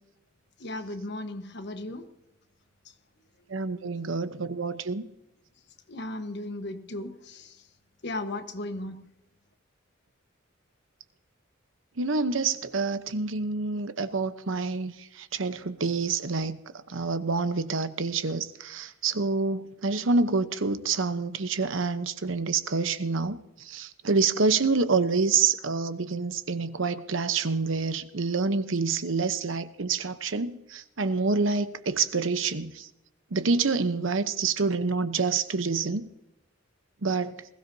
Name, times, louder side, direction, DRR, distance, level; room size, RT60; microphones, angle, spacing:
voice 1, 0.6-2.0 5.9-7.5 8.0-9.0, left 2 dB, 60° left, 1.2 m, -36 dB
voice 2, 3.5-5.0 12.0-14.9 15.2-16.6 16.9-23.4 23.7-32.9 33.3-36.0 37.0-37.4, right 4 dB, 70° right, 0.9 m, -27 dB
20.5 x 16.0 x 2.7 m
head